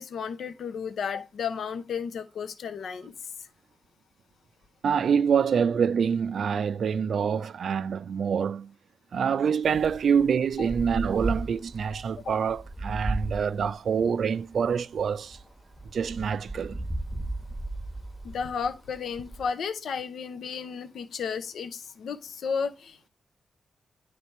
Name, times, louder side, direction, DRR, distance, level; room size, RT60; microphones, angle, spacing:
voice 1, 0.0-3.1 10.6-10.7 12.2-12.4 18.2-23.1, left 6 dB, 75° left, 0.6 m, -33 dB
voice 2, 4.8-8.7 9.1-15.4 15.9-16.8, right 7 dB, 70° right, 0.4 m, -26 dB
Wind, 9.6-19.5, right 2 dB, 5° right, 1.0 m, -36 dB
9.4 x 3.3 x 4.2 m
cardioid pair, 65°, 0 cm